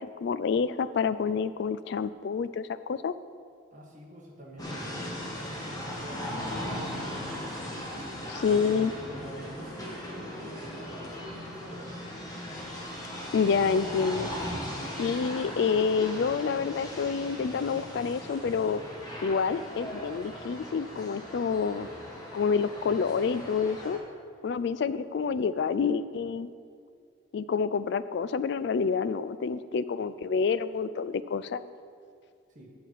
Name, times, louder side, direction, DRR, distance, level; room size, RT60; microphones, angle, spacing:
voice 1, 0.0-3.1 8.3-8.9 13.3-14.3 15.0-18.8 19.2-21.9 22.3-24.0 24.4-26.5 27.3-31.6, left 5 dB, 60° left, 14 dB, 0.3 m, -28 dB
voice 2, 3.7-7.4 8.4-12.0 32.5-32.7, right 1 dB, 40° right, -2 dB, 1.5 m, -45 dB
sound 1, 4.6-24.0, left 1 dB, 20° left, 1.3 m, -38 dB
8.8 x 7.3 x 4.7 m, 2.3 s
head